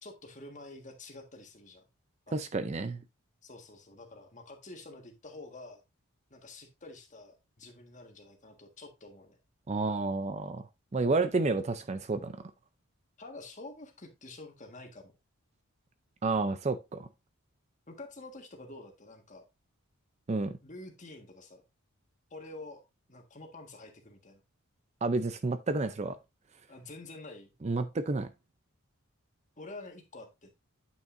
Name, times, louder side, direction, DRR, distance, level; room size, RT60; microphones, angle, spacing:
voice 1, 0.0-1.8 2.3-2.4 3.4-5.8 6.3-9.4 13.2-15.1 17.9-19.4 20.6-21.6 22.3-22.8 23.1-24.4 26.7-27.5 29.6-30.5, left 2 dB, 35° left, 1.6 m, -48 dB
voice 2, 2.3-3.0 9.7-10.7 10.9-12.5 16.2-17.1 20.3-20.6 25.0-26.2 27.6-28.3, right 3 dB, 30° right, 0.4 m, -30 dB
9.3 x 5.9 x 2.5 m
head